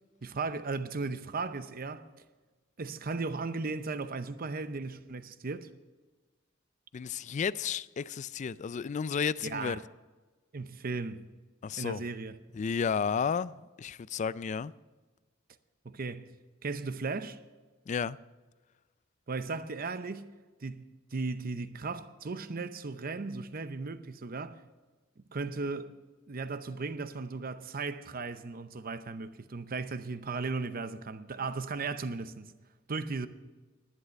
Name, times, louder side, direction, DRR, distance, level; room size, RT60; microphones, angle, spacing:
voice 1, 0.2-2.0 2.8-5.7 9.4-9.8 10.5-11.2 11.8-12.4 15.8-16.3 16.6-17.4 19.3-20.3 20.6-24.6 25.2-26.0 26.3-32.5 32.9-33.3, right 4 dB, 50° right, 0.7 m, -36 dB
voice 2, 6.9-9.8 11.6-12.0 12.5-14.7 17.9-18.2, left 6 dB, 35° left, 0.3 m, -32 dB
11.0 x 10.5 x 6.5 m
head